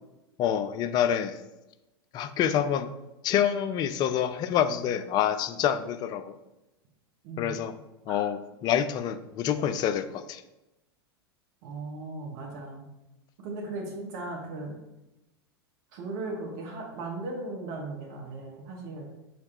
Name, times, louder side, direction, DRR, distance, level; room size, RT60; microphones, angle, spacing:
voice 1, 0.4-1.4 2.1-2.9 3.2-6.3 7.4-7.7 8.1-10.4, left 9 dB, 30° left, 12 dB, 0.3 m, -27 dB
voice 2, 11.6-12.8 13.4-14.7 15.9-19.1, right 2 dB, 50° right, 0 dB, 1.4 m, -37 dB
5.6 x 3.2 x 2.9 m, 0.97 s
figure-of-eight pair, 90°, 13 cm